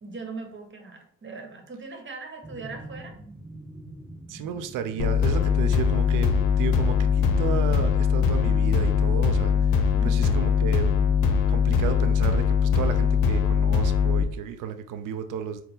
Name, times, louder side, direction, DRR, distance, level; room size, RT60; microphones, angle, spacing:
voice 1, 0.0-3.1 9.9-10.4, right 4 dB, 35° right, 3 dB, 1.2 m, -40 dB
sound 1, 2.4-13.5, right 1 dB, 5° right, 0.6 m, -45 dB
voice 2, 4.3-6.3 6.6-10.9 11.5-15.6, right 8 dB, 65° right, 10 dB, 0.5 m, -33 dB
sound 2, 5.0-14.2, left 6 dB, 80° left, 0.6 m, -21 dB
4.1 x 2.2 x 3.7 m, 0.62 s
supercardioid pair, 55°, 34 cm